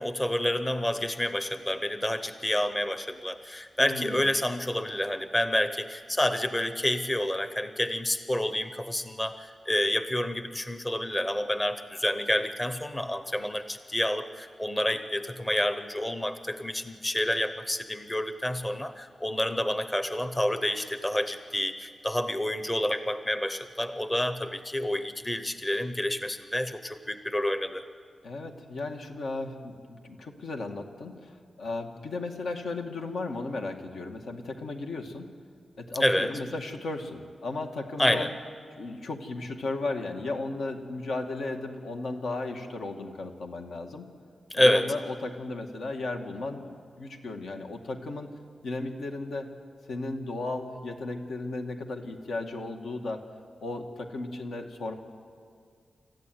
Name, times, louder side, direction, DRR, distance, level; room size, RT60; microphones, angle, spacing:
voice 1, 0.0-27.8 36.0-36.3 38.0-38.3 44.5-44.9, left 1 dB, 15° left, 10 dB, 0.8 m, -28 dB
voice 2, 3.8-4.3 28.2-35.3 35.8-38.3 38.8-44.1 44.6-46.7 47.0-48.3 48.6-49.5 49.9-53.2 53.6-54.9, left 2 dB, 80° left, 4 dB, 2.2 m, -35 dB
28.0 x 14.5 x 9.5 m, 2.2 s
wide cardioid pair, 155°, 0 cm